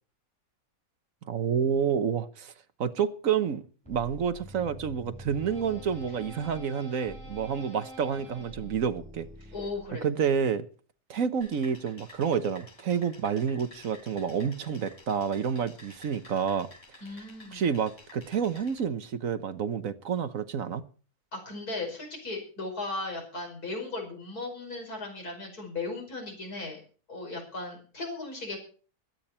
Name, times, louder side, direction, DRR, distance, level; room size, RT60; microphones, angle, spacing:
voice 1, 1.2-2.5 2.8-9.3 10.0-10.6 11.1-16.7 17.5-20.9, right 7 dB, 65° right, 1.4 m, -29 dB
sound 1, 3.9-10.1, equal, 5° left, 5.8 m, -46 dB
voice 2, 9.5-10.1 17.0-17.6 21.3-26.8 27.1-28.6, left 3 dB, 90° left, 5.9 m, -37 dB
sound 2, 11.4-18.8, left 2 dB, 55° left, 5.8 m, -52 dB
21.5 x 8.8 x 4.4 m
omnidirectional pair, 1.6 m